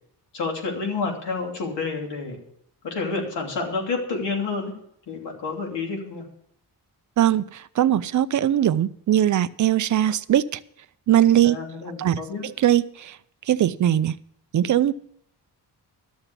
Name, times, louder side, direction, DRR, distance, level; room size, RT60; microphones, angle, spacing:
voice 1, 0.3-2.4 2.8-4.7 5.1-6.2 11.4-12.4, left 4 dB, 90° left, 1 dB, 3.1 m, -29 dB
voice 2, 7.2-10.6 11.1-11.6 12.0-13.2 13.5-14.2 14.5-14.9, right 11 dB, 45° right, 14 dB, 0.5 m, -20 dB
12.5 x 7.1 x 8.1 m, 0.71 s
wide cardioid pair, 170°, 41 cm